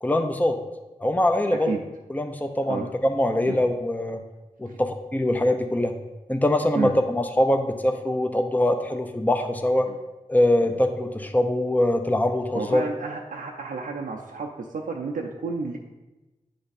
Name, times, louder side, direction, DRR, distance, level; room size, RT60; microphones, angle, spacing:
voice 1, 0.0-0.6 1.0-1.7 2.1-4.2 4.6-5.9 6.3-9.9 10.3-12.8, left 1 dB, 10° left, 6 dB, 0.6 m, -23 dB
voice 2, 12.5-15.8, right 4 dB, 85° right, -1 dB, 0.5 m, -31 dB
9.6 x 3.4 x 4.1 m, 1.1 s
cardioid pair, 45°, 14 cm